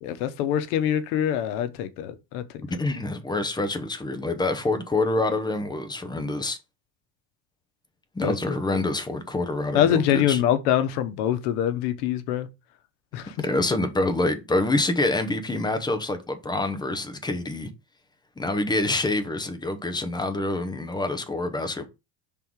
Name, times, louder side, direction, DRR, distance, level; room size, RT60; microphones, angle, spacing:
voice 1, 0.0-2.6 8.2-8.8 9.7-12.5 13.1-13.3, left 10 dB, 85° left, 1.1 m, -25 dB
voice 2, 2.8-6.6 8.1-10.4 13.4-17.7 18.4-21.9, left 2 dB, 10° left, 0.8 m, -26 dB
5.5 x 3.9 x 4.7 m
cardioid pair, 145°, 44 cm